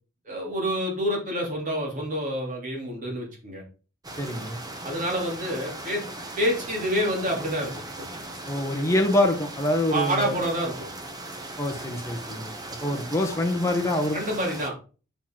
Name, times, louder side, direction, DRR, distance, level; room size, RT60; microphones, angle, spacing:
voice 1, 0.2-3.6 4.8-6.0 6.4-7.8 9.9-10.9 14.1-14.7, equal, 35° right, -1 dB, 3.0 m, -28 dB
sound 1, 4.0-14.7, right 2 dB, 20° right, 1.0 m, -38 dB
voice 2, 4.2-4.6 8.5-10.4 11.6-12.5 12.8-14.2, left 1 dB, 15° left, 1 dB, 1.0 m, -25 dB
7.0 x 5.9 x 3.8 m, 0.35 s
head